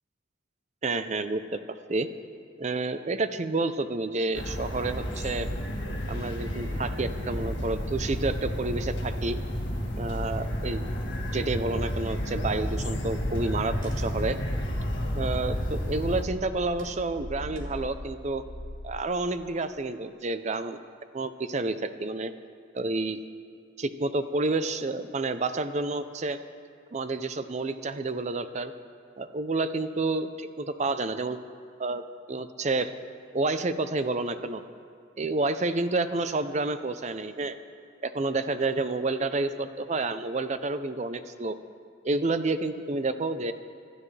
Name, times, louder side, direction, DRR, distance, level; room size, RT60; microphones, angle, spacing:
voice 1, 0.8-2.1 2.6-5.5 6.1-9.4 10.0-10.8 11.3-14.4 15.2-18.4 18.8-20.8 21.1-22.3 22.7-23.2 23.8-26.4 26.9-28.7 29.2-31.4 31.8-32.0 32.3-32.9 33.3-34.6 35.2-37.6 38.0-41.6 42.0-43.5, right 3 dB, 35° right, 11 dB, 0.5 m, -29 dB
sound 1, 4.3-16.2, equal, 60° left, 1.9 m, -31 dB
Car / Engine, 12.3-19.0, left 1 dB, 75° right, 3.3 m, -40 dB
25.5 x 12.5 x 3.3 m, 2.2 s
head